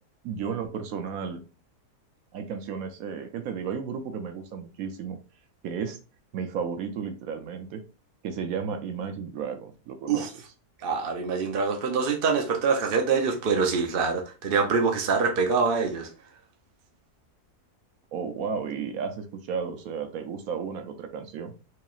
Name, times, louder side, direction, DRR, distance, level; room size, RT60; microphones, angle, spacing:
voice 1, 0.2-1.4 2.3-5.2 5.6-6.0 6.3-7.8 8.2-10.3 18.1-21.6, right 6 dB, 70° right, 1.0 m, -33 dB
voice 2, 10.8-16.1, right 5 dB, 55° right, 0.6 m, -25 dB
4.7 x 3.0 x 2.4 m
omnidirectional pair, 1.7 m